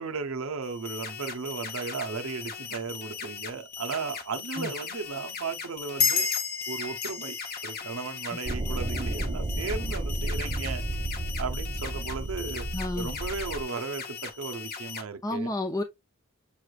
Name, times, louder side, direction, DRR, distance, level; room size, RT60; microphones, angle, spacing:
voice 1, 0.0-6.3 6.7-7.4 7.6-10.8 11.4-12.6 13.0-15.5, right 4 dB, 85° right, 0.6 m, -35 dB
sound 1, 0.6-15.0, left 6 dB, 45° left, 0.9 m, -39 dB
sound 2, 6.0-9.1, left 5 dB, 70° left, 1.4 m, -30 dB
sound 3, 8.4-13.6, right 1 dB, 25° right, 0.6 m, -32 dB
voice 2, 12.7-13.1 15.2-15.8, left 2 dB, 15° left, 0.6 m, -30 dB
6.9 x 3.1 x 2.3 m
head